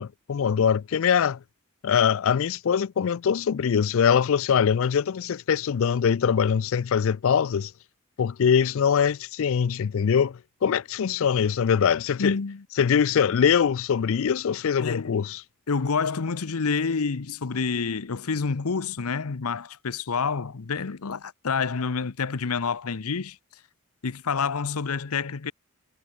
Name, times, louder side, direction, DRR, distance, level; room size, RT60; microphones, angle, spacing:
voice 1, 0.0-1.4 1.8-7.7 8.2-12.4 12.8-15.4, left 7 dB, 65° left, 0.4 m, -23 dB
voice 2, 12.2-12.6 14.8-15.2 15.7-23.4 24.0-25.5, left 5 dB, 85° left, 0.8 m, -28 dB
head